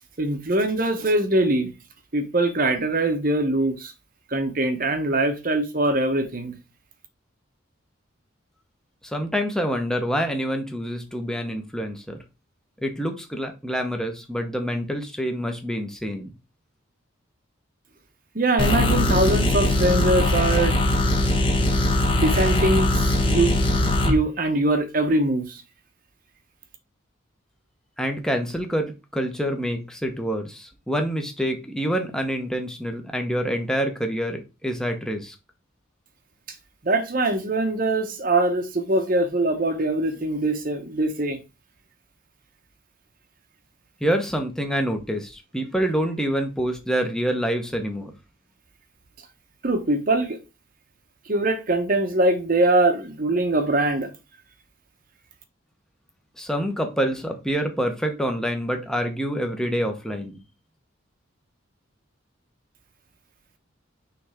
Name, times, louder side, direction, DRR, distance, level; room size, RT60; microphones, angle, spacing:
voice 1, 0.2-1.7 2.1-3.9 4.3-6.5 18.3-20.8 21.6-23.5 24.0-25.6 36.8-41.4 49.6-50.4 51.3-54.1, right 2 dB, 45° right, 0.9 m, -22 dB
voice 2, 9.0-12.2 12.8-16.3 28.0-35.3 44.0-48.1 56.4-60.4, equal, 5° left, 1.0 m, -27 dB
sound 1, 18.6-24.2, left 1 dB, 25° left, 1.1 m, -21 dB
6.3 x 3.5 x 5.0 m
head